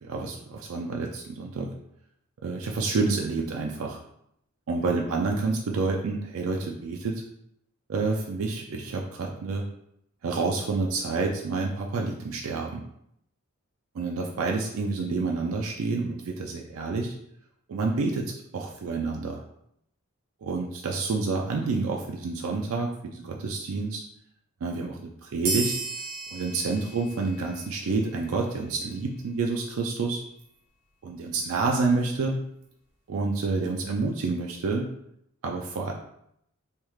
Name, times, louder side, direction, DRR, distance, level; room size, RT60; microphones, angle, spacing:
voice 1, 0.0-1.7 2.4-4.0 4.7-7.2 7.9-9.7 10.2-12.8 13.9-17.1 17.7-19.4 20.4-24.0 24.6-25.8 26.3-30.2 31.0-32.4 33.1-34.9 35.4-35.9, right 3 dB, 80° right, 0 dB, 0.4 m, -28 dB
sound 1, 25.4-28.5, right 3 dB, 55° right, 0.7 m, -34 dB
3.2 x 2.3 x 3.1 m, 0.74 s
head